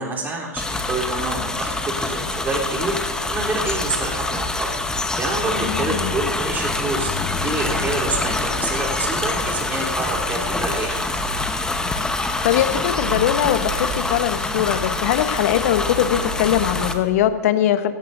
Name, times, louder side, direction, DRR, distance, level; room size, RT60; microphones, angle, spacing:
voice 1, 0.0-3.0 3.3-4.7 5.2-7.1 7.4-11.0, right 3 dB, 20° right, -2 dB, 3.5 m, -27 dB
sound 1, 0.6-16.9, left 2 dB, 10° left, 1.0 m, -25 dB
voice 2, 5.6-6.1 12.4-17.9, left 11 dB, 60° left, 10 dB, 1.1 m, -21 dB
17.5 x 14.0 x 2.7 m, 1.4 s
hypercardioid pair, 120°, 9 cm